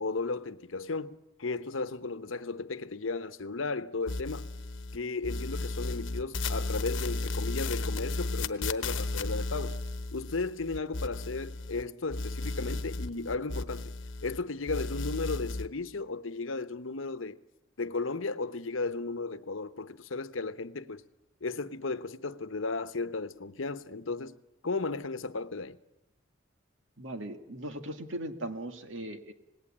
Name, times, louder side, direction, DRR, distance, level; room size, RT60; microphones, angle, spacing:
voice 1, 0.0-4.5 4.9-9.8 10.1-13.9 14.2-17.4 17.8-21.0 21.4-24.4 24.6-25.8, left 3 dB, 90° left, 0.9 m, -35 dB
sound 1, 4.1-5.0 5.2-11.8 12.1-14.4 14.7-15.7, left 2 dB, 70° left, 1.1 m, -34 dB
voice 2, 27.0-29.3, right 1 dB, 75° right, 2.0 m, -38 dB
26.0 x 19.0 x 8.6 m
head